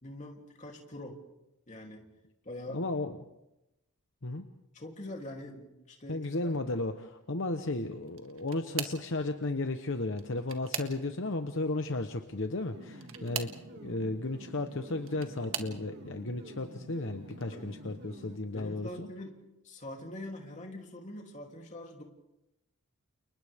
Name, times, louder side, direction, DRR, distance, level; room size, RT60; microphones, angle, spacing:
voice 1, 0.0-1.2 1.7-2.1 2.4-2.8 4.7-6.2 17.5-17.8 18.5-19.4 19.6-22.0, left 1 dB, 35° left, 1 dB, 3.1 m, -44 dB
voice 2, 2.7-3.1 4.2-4.4 6.1-19.1, left 2 dB, 60° left, 6 dB, 1.1 m, -34 dB
sound 1, 8.1-9.1 10.1-11.3 12.9-13.6 14.7-15.8 16.5-16.9 17.3-17.4 18.8-18.9, right 9 dB, 65° right, 1.6 m, -40 dB
sound 2, 12.7-18.4, right 1 dB, 50° right, 2.4 m, -49 dB
30.0 x 29.5 x 3.6 m, 0.90 s
head